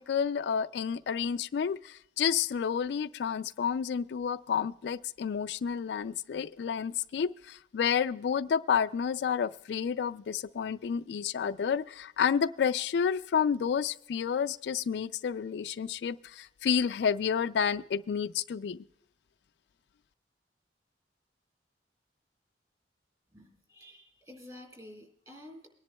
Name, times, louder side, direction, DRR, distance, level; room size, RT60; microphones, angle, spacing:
voice 1, 0.1-18.8, left 7 dB, 70° left, 12 dB, 0.3 m, -30 dB
voice 2, 23.3-25.7, left 1 dB, 20° right, 2 dB, 4.3 m, -50 dB
24.5 x 10.5 x 2.2 m, 0.74 s
head